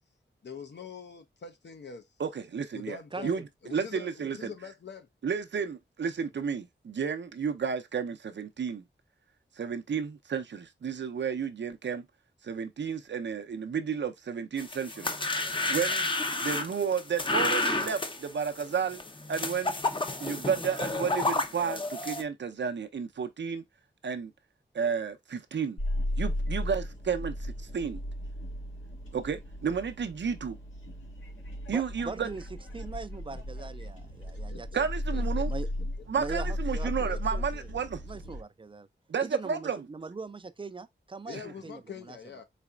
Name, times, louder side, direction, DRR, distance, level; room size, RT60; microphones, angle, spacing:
voice 1, 0.4-2.1 2.7-5.1 34.5-34.6 35.1-35.4 41.3-42.4, left 6 dB, 65° left, 0.8 m, -44 dB
voice 2, 2.2-3.0 3.2-3.4 3.7-4.5 5.2-8.8 9.6-12.0 12.4-15.1 15.7-16.1 16.4-19.0 19.3-19.8 20.2-23.6 24.0-24.3 24.7-25.8 26.2-28.0 29.1-30.6 31.7-32.3 34.7-35.5 36.1-38.0 39.1-39.8 41.3-41.4, right 6 dB, 70° right, 0.6 m, -32 dB
sound 1, 14.6-22.2, left 2 dB, 25° left, 0.7 m, -31 dB
sound 2, 25.8-38.4, left 1 dB, 85° left, 2.0 m, -35 dB
voice 3, 31.7-32.4 32.7-34.7 35.2-35.7 36.2-37.7 38.0-38.9 39.2-42.2, right 4 dB, 25° right, 0.4 m, -41 dB
4.2 x 4.0 x 2.3 m
wide cardioid pair, 85°, 19 cm